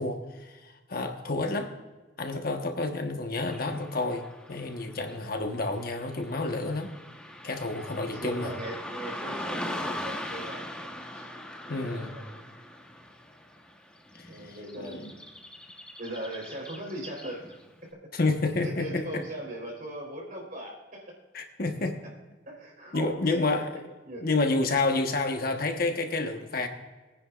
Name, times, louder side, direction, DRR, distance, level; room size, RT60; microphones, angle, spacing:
voice 1, 0.0-1.7 2.2-6.9 7.4-8.5 11.7-12.1 14.1-15.1 18.1-19.2 21.3-22.0 22.9-23.9 24.2-26.7, left 2 dB, 55° left, 4 dB, 1.1 m, -29 dB
Car passing by / Traffic noise roadway noise, 3.4-17.7, left 1 dB, 5° left, 1.1 m, -41 dB
voice 2, 8.1-11.3 11.6-12.4 14.2-15.2 16.0-17.6 18.7-21.1 22.5-23.6 24.0-24.5, right 1 dB, 50° right, 0 dB, 3.9 m, -40 dB
21.5 x 9.8 x 2.4 m, 1.2 s
head